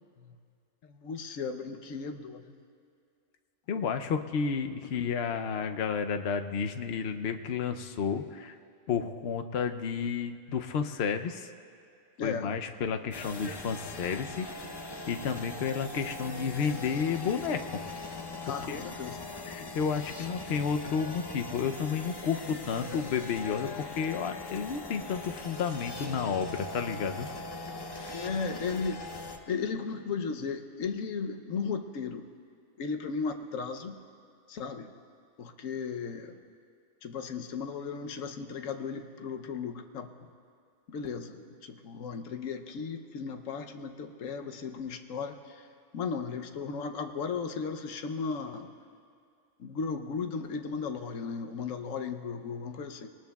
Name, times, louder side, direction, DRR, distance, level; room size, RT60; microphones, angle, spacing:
voice 1, 0.9-2.4 4.9-5.2 12.2-12.5 18.4-19.2 28.1-32.3 32.8-34.0 34.5-34.9 35.4-36.4 37.0-40.1 40.9-45.6 45.9-48.7 49.6-53.1, left 5 dB, 90° left, 6 dB, 1.2 m, -36 dB
voice 2, 3.7-8.5 8.9-11.5 12.2-14.5 15.1-17.8 18.5-18.9 19.4-27.3, left 6 dB, 60° left, 7 dB, 0.9 m, -31 dB
sound 1, 13.1-29.4, left 2 dB, 25° left, 0.6 m, -41 dB
22.0 x 19.0 x 2.3 m, 2.3 s
omnidirectional pair, 1.3 m